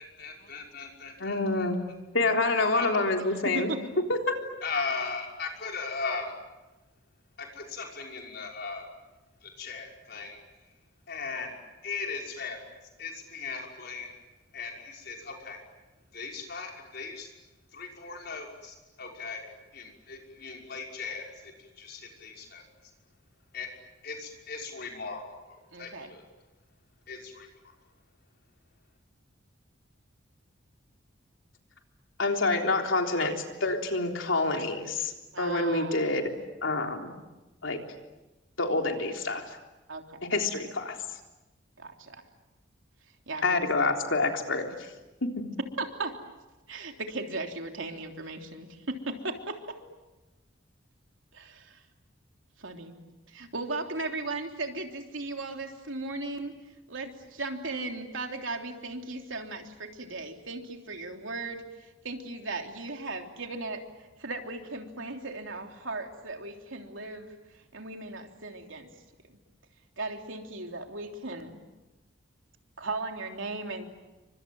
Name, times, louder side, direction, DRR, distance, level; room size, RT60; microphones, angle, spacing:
voice 1, 0.0-1.7 2.7-2.9 4.6-6.3 7.4-8.9 9.4-10.4 11.1-11.6 11.8-12.6 13.0-14.1 14.5-15.6 16.1-17.3 17.7-22.6 23.5-23.7 24.0-26.2 27.1-27.5, left 4 dB, 55° left, 0 dB, 5.9 m, -38 dB
voice 2, 1.2-1.8 2.1-3.7 4.1-4.2 32.2-35.1 35.4-36.3 36.6-37.1 37.6-37.8 38.6-39.4 40.2-41.0 43.4-44.7 45.2-45.4, left 3 dB, 75° left, 3 dB, 3.6 m, -27 dB
voice 3, 3.3-3.8 25.7-26.1 35.3-36.2 39.9-40.2 41.8-42.2 43.3-43.7 45.8-46.2 46.7-49.8 51.3-51.8 52.6-53.0 53.3-56.6 56.9-61.6 62.0-63.8 64.2-67.3 67.7-68.9 70.0-71.6 72.8-73.9, right 3 dB, 80° right, 3 dB, 3.3 m, -37 dB
30.0 x 25.0 x 7.8 m, 1.1 s
head